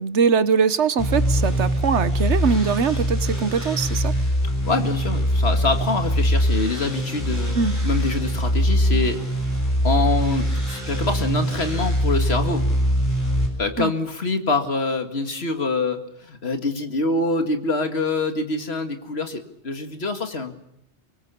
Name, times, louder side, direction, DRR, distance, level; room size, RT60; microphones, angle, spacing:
voice 1, 0.0-4.1 7.5-7.8 13.8-13.9, right 5 dB, 85° right, 14 dB, 1.4 m, -22 dB
sound 1, 1.0-13.5, equal, 45° left, 7.2 m, -22 dB
voice 2, 4.4-7.6 7.8-9.2 9.8-12.6 13.6-20.6, left 3 dB, 65° left, 6 dB, 2.3 m, -25 dB
25.0 x 21.5 x 7.0 m, 0.77 s
omnidirectional pair, 1.1 m